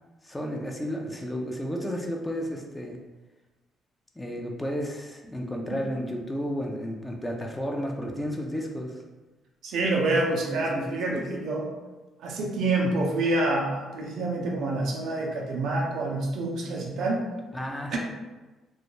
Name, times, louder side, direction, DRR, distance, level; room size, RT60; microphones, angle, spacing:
voice 1, 0.2-3.0 4.2-9.0 10.5-11.2 17.5-18.0, equal, 15° left, 1 dB, 0.5 m, -32 dB
voice 2, 9.6-11.7 12.2-17.2 17.9-18.0, right 2 dB, 70° right, -1 dB, 0.5 m, -27 dB
2.3 x 2.1 x 3.0 m, 1.2 s
hypercardioid pair, 50°, 0 cm